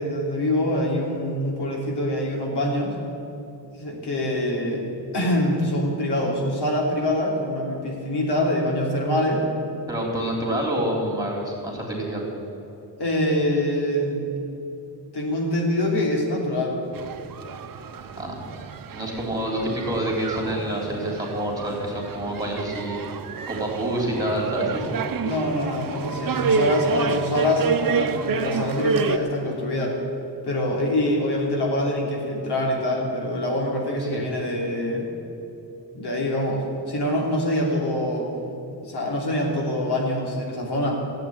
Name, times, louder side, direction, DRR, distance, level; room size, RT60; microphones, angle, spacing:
voice 1, 0.0-3.0 3.7-4.8 5.1-9.5 13.0-14.3 15.1-16.8 25.2-30.0 30.4-35.1 35.9-38.3 38.7-41.1, left 1 dB, 80° left, -1 dB, 3.2 m, -25 dB
voice 2, 9.9-12.3 18.2-18.4 18.9-23.0 23.5-24.8 34.0-34.2, right 1 dB, 10° right, -2 dB, 3.3 m, -27 dB
sound 1, 16.9-29.2, right 5 dB, 55° right, 0.8 m, -29 dB
15.5 x 8.3 x 9.8 m, 3.0 s
wide cardioid pair, 170°, 40 cm